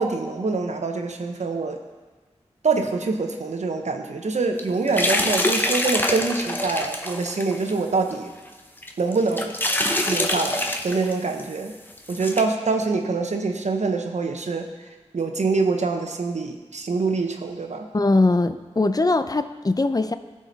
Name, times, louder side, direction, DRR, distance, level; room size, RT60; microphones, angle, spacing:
voice 1, 0.0-1.8 2.6-8.3 9.0-9.5 10.1-11.8 12.1-14.7 15.1-17.9, right 4 dB, 80° right, 5 dB, 0.9 m, -25 dB
sound 1, 4.6-7.8 8.1-8.2 8.8-11.1 11.4-11.5 12.0-12.4, left 1 dB, 15° left, 1.0 m, -25 dB
voice 2, 17.9-20.2, left 2 dB, 35° left, 11 dB, 0.5 m, -21 dB
15.0 x 5.0 x 4.0 m, 1.3 s
cardioid pair, 40°, 12 cm